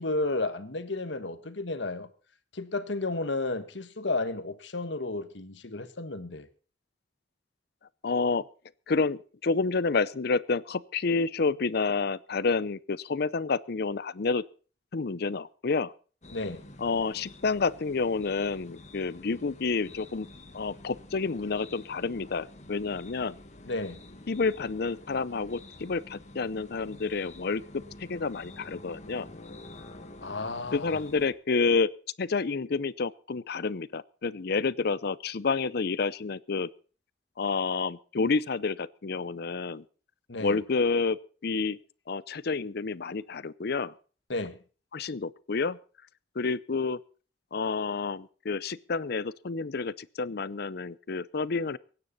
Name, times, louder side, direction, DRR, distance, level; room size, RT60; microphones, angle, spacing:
voice 1, 0.0-2.1 2.5-6.5 16.3-16.6 23.6-24.0 30.2-31.0 40.3-40.6 44.3-44.6, left 2 dB, 75° left, 1.5 m, -32 dB
voice 2, 8.0-8.5 8.9-14.4 14.9-15.9 16.8-20.3 20.5-23.4 24.3-29.3 30.7-31.9 32.2-36.7 37.4-39.8 40.4-41.8 42.1-43.9 44.9-45.8 46.4-47.0 47.5-51.8, left 4 dB, 60° left, 0.6 m, -29 dB
sound 1, 16.2-31.3, left 2 dB, 40° left, 1.8 m, -49 dB
24.0 x 9.7 x 4.1 m
head